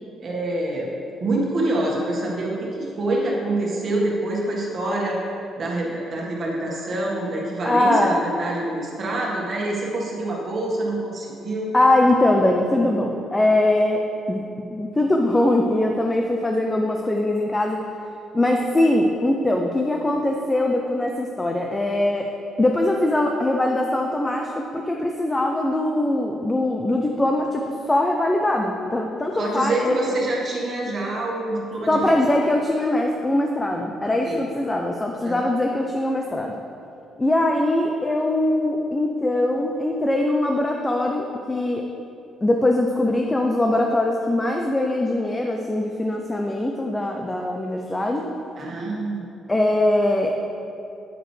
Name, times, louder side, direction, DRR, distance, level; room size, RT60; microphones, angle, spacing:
voice 1, 0.2-0.9 1.2-5.2 5.6-11.7 29.3-32.2 34.2-34.4 35.2-35.5 48.6-49.3, right 2 dB, 35° right, -3 dB, 1.6 m, -26 dB
voice 2, 7.6-8.1 11.7-14.4 14.7-17.8 18.3-22.3 22.6-29.9 31.9-36.5 37.2-41.9 42.4-48.3 49.5-50.3, left 1 dB, 10° left, 2 dB, 0.4 m, -22 dB
9.0 x 8.7 x 3.2 m, 2.7 s
cardioid pair, 160°, 0 cm